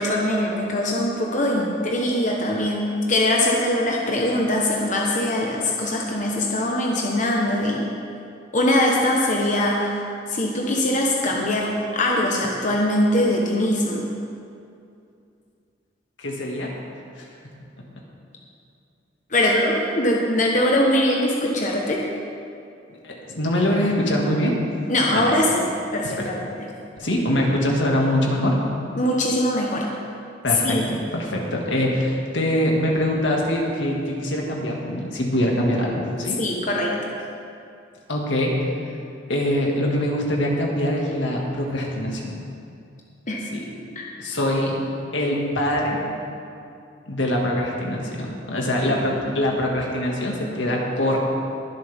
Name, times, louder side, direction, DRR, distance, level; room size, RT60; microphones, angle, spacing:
voice 1, 0.0-7.8 8.5-9.9 10.3-14.1 19.3-22.0 24.9-25.6 25.9-26.3 29.0-29.9 30.6-30.9 36.4-37.2 43.3-43.4, left 1 dB, 40° left, -2 dB, 1.1 m, -22 dB
voice 2, 16.2-16.8 17.2-17.6 19.4-19.5 23.0-24.5 25.1-25.3 26.2-26.3 27.0-28.6 30.4-36.4 38.1-38.6 39.3-42.4 43.5-43.7 44.2-44.8 45.1-46.0 47.1-51.2, left 1 dB, 85° left, -1 dB, 2.0 m, -23 dB
21.5 x 7.8 x 3.6 m, 2.5 s
head